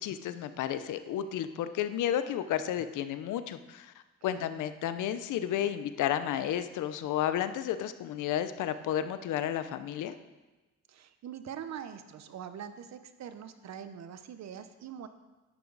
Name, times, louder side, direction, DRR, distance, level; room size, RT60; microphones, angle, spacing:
voice 1, 0.0-3.9 4.2-10.2, left 10 dB, 85° left, 11 dB, 0.8 m, -32 dB
voice 2, 10.9-15.1, right 8 dB, 60° right, 10 dB, 0.9 m, -43 dB
11.0 x 10.5 x 4.0 m, 1.1 s
cardioid pair, 90°, 30 cm